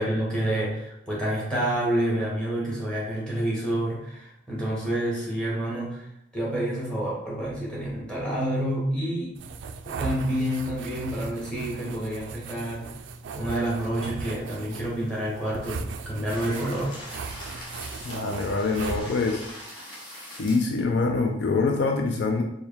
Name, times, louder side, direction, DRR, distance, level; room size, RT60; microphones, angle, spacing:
voice 1, 0.0-6.1 6.3-9.4 9.8-12.9 13.3-17.0, right 1 dB, 5° left, -6 dB, 1.3 m, -28 dB
sound 1, 9.4-19.5, right 4 dB, 65° right, 0.3 m, -38 dB
sound 2, 16.2-20.8, equal, 25° left, 0.9 m, -42 dB
voice 2, 18.0-19.4 20.4-22.4, left 3 dB, 60° left, 3 dB, 0.4 m, -25 dB
4.4 x 2.2 x 3.5 m, 0.77 s
head